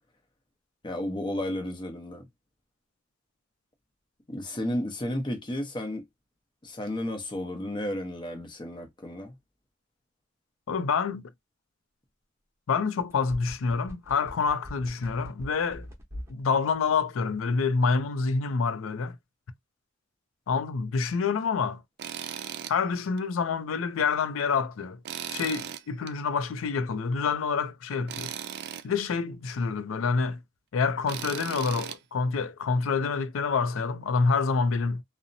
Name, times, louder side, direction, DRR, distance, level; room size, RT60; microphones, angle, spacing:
voice 1, 0.8-2.2 4.3-6.1 6.6-9.4, left 1 dB, 25° left, 0.7 m, -33 dB
voice 2, 10.7-11.2 12.7-15.9 16.3-19.2 20.5-21.8 22.7-25.0 25.3-28.3 28.8-30.4 30.7-35.0, left 5 dB, 75° left, 0.4 m, -27 dB
sound 1, 13.0-16.4 16.7-16.8, equal, 15° right, 0.9 m, -42 dB
Tools, 22.0-22.8 23.2-23.3 25.1-26.1 28.1-28.9 31.1-32.0, right 10 dB, 55° right, 0.3 m, -37 dB
2.7 x 2.0 x 2.5 m
head